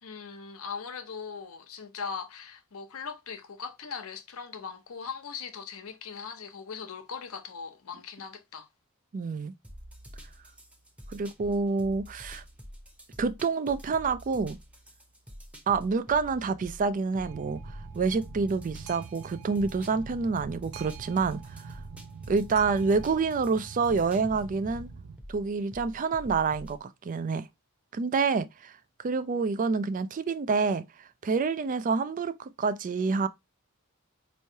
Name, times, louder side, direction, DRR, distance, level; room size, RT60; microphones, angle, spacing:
voice 1, 0.0-8.7, left 6 dB, 75° left, 0.7 m, -40 dB
voice 2, 9.1-9.5 11.1-12.4 13.2-14.6 15.7-21.8 22.3-24.9 25.3-27.5 27.9-28.7 29.0-30.8 31.2-33.3, right 4 dB, 40° right, 0.3 m, -28 dB
sound 1, 9.6-26.8, equal, 5° right, 0.8 m, -47 dB
Boat Water vehicle, 17.2-25.2, right 5 dB, 90° right, 0.5 m, -45 dB
4.4 x 3.1 x 2.7 m
head